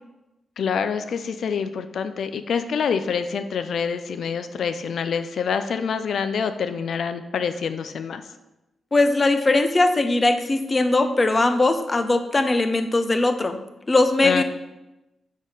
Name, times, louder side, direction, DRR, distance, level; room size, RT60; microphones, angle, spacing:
voice 1, 0.6-8.2 14.2-14.4, left 6 dB, 75° left, 10 dB, 0.4 m, -26 dB
voice 2, 8.9-13.6 13.9-14.4, left 2 dB, 30° left, 9 dB, 0.6 m, -20 dB
5.1 x 4.0 x 5.5 m, 0.97 s
cardioid pair, 85°, 0 cm